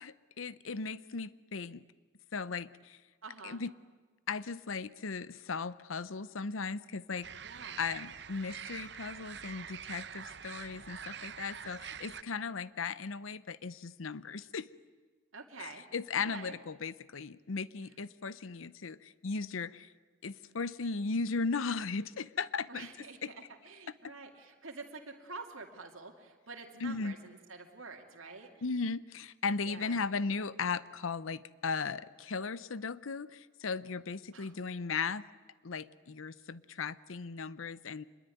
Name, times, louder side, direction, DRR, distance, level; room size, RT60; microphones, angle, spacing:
voice 1, 0.0-1.8 2.3-3.0 3.4-3.7 4.3-7.3 7.8-14.7 15.6-19.9 20.2-23.3 26.8-27.1 28.6-35.2 35.6-38.0, left 4 dB, 85° left, 17 dB, 0.7 m, -37 dB
voice 2, 3.2-3.6 7.4-7.8 15.3-15.8 16.2-16.6 22.7-28.5 29.6-30.0 34.3-34.6, right 4 dB, 85° right, 2 dB, 2.5 m, -48 dB
sound 1, 7.2-12.2, right 8 dB, 55° right, 0.7 m, -45 dB
26.0 x 21.5 x 9.2 m, 1.3 s
head